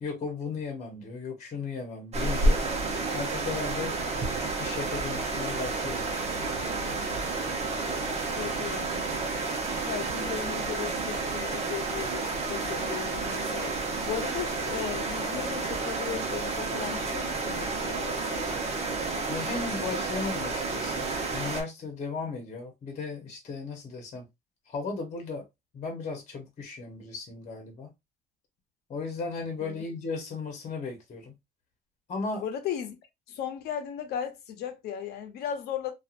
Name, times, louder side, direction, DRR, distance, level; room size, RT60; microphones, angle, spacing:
voice 1, 0.0-2.6 3.1-4.0 4.3-6.6 19.3-24.2 24.7-25.4 25.7-27.9 28.9-31.3 32.1-32.4, left 4 dB, 45° left, 1.0 m, -36 dB
sound 1, 2.1-21.6, right 3 dB, 40° right, 0.8 m, -30 dB
voice 2, 8.1-9.1 9.8-13.7 14.0-18.6 29.6-29.8 32.4-33.0 33.3-35.9, left 9 dB, 75° left, 0.7 m, -36 dB
2.8 x 2.4 x 2.5 m
cardioid pair, 110°, 17 cm